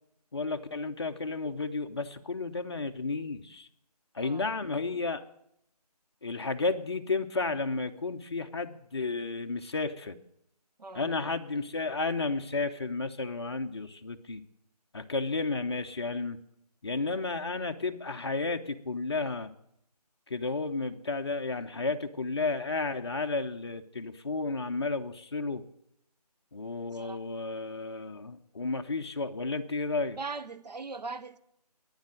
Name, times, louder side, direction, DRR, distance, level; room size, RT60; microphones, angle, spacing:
voice 1, 0.3-3.7 4.1-5.2 6.2-10.2 10.9-14.4 14.9-16.4 16.8-19.5 20.3-25.6 26.5-30.2, left 3 dB, 40° left, 0.7 m, -32 dB
voice 2, 4.2-4.6 10.8-11.1 26.9-27.2 30.2-31.4, right 4 dB, 85° right, 0.8 m, -40 dB
9.7 x 7.2 x 9.0 m
figure-of-eight pair, 170°, 21 cm